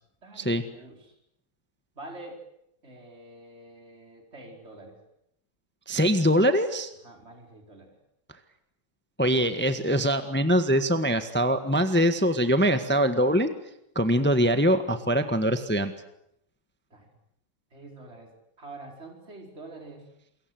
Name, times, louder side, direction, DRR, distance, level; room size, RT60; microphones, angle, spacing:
voice 1, 0.2-1.2 1.9-2.4 2.8-5.0 7.0-7.9 16.9-17.1 17.7-20.1, right 2 dB, 35° right, 1 dB, 5.1 m, -46 dB
voice 2, 5.9-6.9 9.2-13.5 13.9-15.9, equal, 5° left, 8 dB, 1.3 m, -23 dB
28.5 x 22.5 x 7.9 m, 0.77 s
omnidirectional pair, 2.1 m